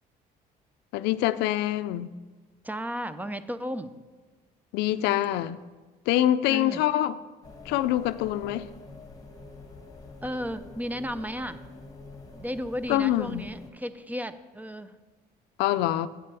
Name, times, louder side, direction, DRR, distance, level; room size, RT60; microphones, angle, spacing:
voice 1, 0.9-2.1 4.7-5.6 6.1-7.2 7.7-8.7 12.9-13.5 15.6-16.1, left 13 dB, 90° left, 0.4 m, -25 dB
voice 2, 2.6-3.9 6.5-6.8 10.2-11.6 12.3-15.0, equal, 10° right, 0.4 m, -34 dB
sound 1, 7.4-13.7, left 3 dB, 20° left, 1.1 m, -46 dB
8.4 x 7.5 x 4.7 m
cardioid pair, 110°, 17 cm